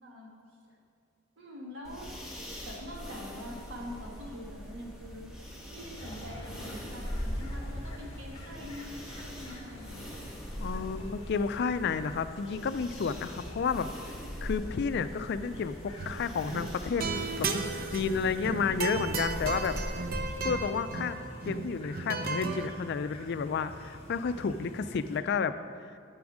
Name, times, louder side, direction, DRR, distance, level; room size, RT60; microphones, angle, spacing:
voice 1, 1.4-2.1 2.6-5.3 5.7-10.1 10.5-10.8, left 1 dB, 70° right, -2 dB, 1.8 m, -44 dB
sound 1, 1.8-20.2, equal, 5° right, 1.3 m, -41 dB
sound 2, 6.0-25.2, left 1 dB, 30° left, 1.1 m, -48 dB
voice 2, 10.6-14.0 14.4-17.1 17.4-17.5 17.9-19.8 20.4-21.2 21.4-25.6, left 5 dB, 55° left, 11 dB, 0.4 m, -31 dB
sound 3, 15.9-16.2 16.5-22.7, right 4 dB, 50° right, 0.6 m, -35 dB
9.6 x 6.2 x 4.9 m, 2.3 s
head